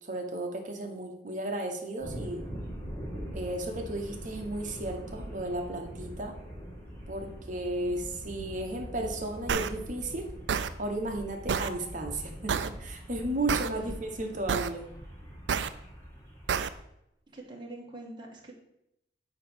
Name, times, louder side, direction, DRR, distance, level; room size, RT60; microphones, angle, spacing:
voice 1, 0.0-2.4 3.3-6.3 7.1-10.3 10.8-14.8, right 1 dB, 45° right, 3 dB, 1.2 m, -34 dB
sound 1, 2.0-16.8, equal, 15° left, 1.7 m, -43 dB
sound 2, 9.5-9.7 10.5-10.7 11.5-11.7 12.5-12.7 13.5-13.7 14.5-14.7 15.5-15.7 16.5-16.7, right 6 dB, 75° right, 0.4 m, -28 dB
voice 2, 17.3-18.5, right 1 dB, 25° right, -1 dB, 1.5 m, -44 dB
8.8 x 3.0 x 6.1 m, 0.81 s
head